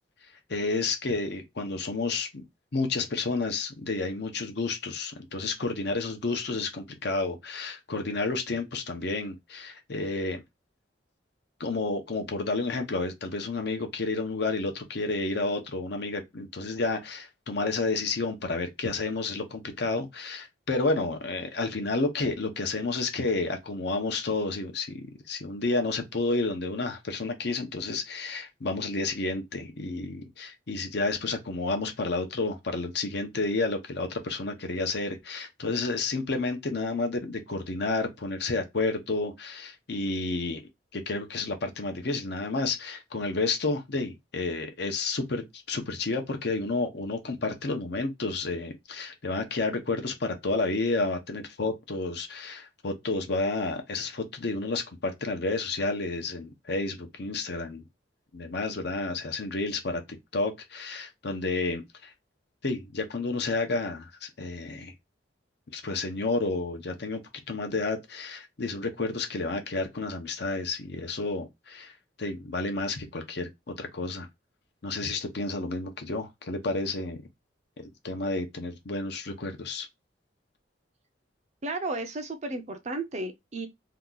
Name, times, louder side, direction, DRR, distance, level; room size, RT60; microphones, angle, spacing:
voice 1, 0.5-2.4 2.7-10.4 11.6-40.6 40.9-57.9 58.3-60.0 60.3-62.1 62.6-64.9 65.7-67.2 67.5-74.3 74.8-77.2 77.8-79.9, left 3 dB, 60° left, 0.7 m, -31 dB
voice 2, 81.6-83.7, right 2 dB, 35° right, 0.6 m, -33 dB
2.9 x 2.3 x 3.7 m
head